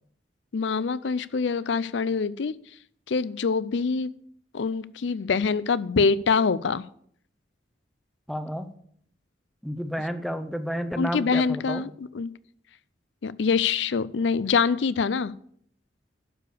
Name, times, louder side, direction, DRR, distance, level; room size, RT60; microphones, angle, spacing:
voice 1, 0.5-2.5 3.1-4.1 4.5-6.9 11.0-12.3 13.2-15.3, left 5 dB, 75° left, 18 dB, 0.5 m, -25 dB
voice 2, 8.3-8.7 9.6-11.8, equal, ahead, 9 dB, 0.6 m, -31 dB
11.5 x 4.9 x 6.7 m, 0.63 s
head